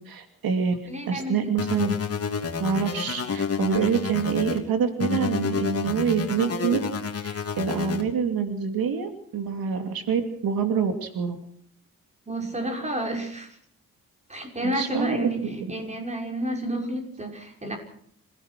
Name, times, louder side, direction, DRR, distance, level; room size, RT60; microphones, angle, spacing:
voice 1, 0.1-0.7 1.1-1.9 2.6-6.8 7.2-11.4 14.6-15.3 15.6-15.7, right 6 dB, 85° right, 7 dB, 2.9 m, -26 dB
voice 2, 0.9-1.6 12.3-13.6 14.3-17.8, right 1 dB, 20° right, 3 dB, 6.1 m, -30 dB
sound 1, 1.6-4.6 5.0-8.0, left 5 dB, 45° left, 3.2 m, -29 dB
27.0 x 17.0 x 6.1 m, 0.63 s
wide cardioid pair, 135°, 35 cm